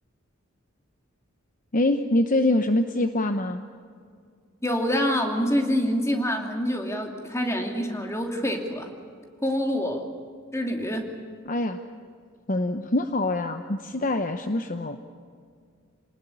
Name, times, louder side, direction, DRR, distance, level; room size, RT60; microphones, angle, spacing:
voice 1, 1.7-3.6 11.4-11.8 12.5-15.0, left 1 dB, 40° left, 8 dB, 0.9 m, -24 dB
voice 2, 4.6-8.9 9.4-10.1 10.5-11.1, equal, 15° left, 3 dB, 2.7 m, -26 dB
28.0 x 19.5 x 8.6 m, 2.2 s
head